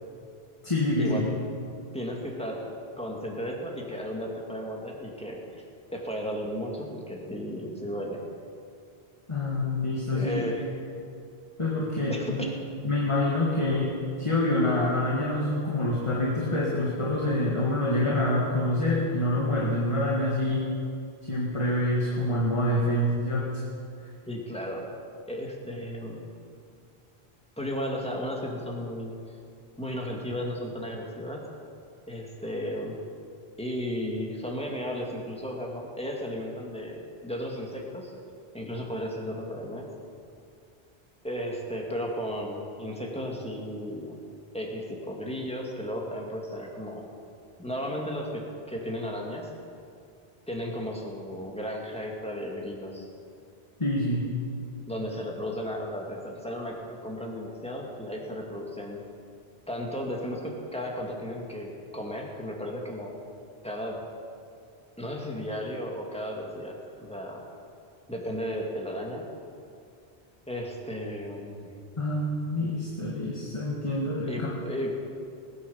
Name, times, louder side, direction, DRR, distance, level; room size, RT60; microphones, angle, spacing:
voice 1, 0.6-1.2 9.3-10.5 11.6-12.5 12.8-20.7 21.2-23.6 53.8-54.3 72.0-74.6, left 1 dB, 30° left, -4 dB, 2.0 m, -26 dB
voice 2, 1.9-2.6 3.0-5.6 5.9-8.2 10.1-10.8 12.1-12.5 24.3-24.8 25.3-26.2 27.6-29.1 29.8-31.4 32.1-33.0 33.6-38.1 38.5-39.9 41.2-44.2 44.5-47.1 47.6-49.5 50.5-53.1 54.9-59.0 59.7-63.2 63.6-64.0 65.0-67.4 68.1-69.3 70.5-71.7 74.2-74.9, equal, 5° left, -1 dB, 2.4 m, -34 dB
20.0 x 9.7 x 7.2 m, 2.4 s
omnidirectional pair, 1.1 m